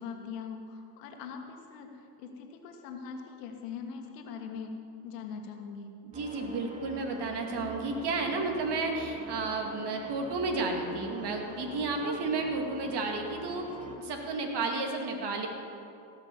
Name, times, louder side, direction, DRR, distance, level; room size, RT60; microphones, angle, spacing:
voice 1, 0.0-4.8 5.0-5.9, left 6 dB, 85° left, 4 dB, 1.6 m, -42 dB
voice 2, 6.0-15.5, right 3 dB, 55° right, 3 dB, 2.3 m, -32 dB
sound 1, 6.1-14.0, right 1 dB, 15° right, 2.0 m, -44 dB
17.0 x 6.1 x 7.2 m, 2.6 s
supercardioid pair, 75°, 47 cm